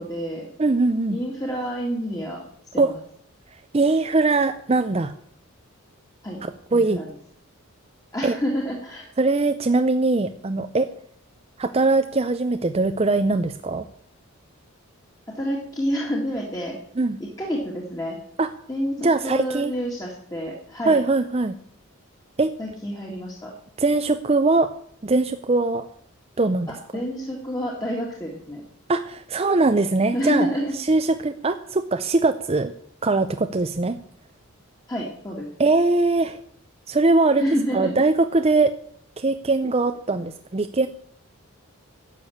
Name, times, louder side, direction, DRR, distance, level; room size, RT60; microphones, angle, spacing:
voice 1, 0.0-0.5 1.1-2.4 2.7-3.0 6.2-6.4 6.7-7.1 8.1-9.1 15.3-16.8 17.4-18.2 18.7-21.0 22.6-23.5 26.9-28.6 30.1-30.7 34.9-35.5 37.4-37.9, equal, 15° left, -2 dB, 1.9 m, -28 dB
voice 2, 0.6-1.2 2.8-2.9 3.7-5.1 6.4-7.0 8.2-8.4 9.2-10.9 11.6-13.8 17.0-17.2 18.4-18.5 19.0-19.7 20.9-21.6 22.4-22.5 23.8-24.7 25.0-25.9 26.4-26.7 28.9-30.5 30.8-32.7 33.0-34.0 35.6-36.4 36.9-37.4 37.7-38.7 39.2-40.9, right 3 dB, 30° right, 8 dB, 0.5 m, -21 dB
11.5 x 6.9 x 8.4 m, 0.62 s
head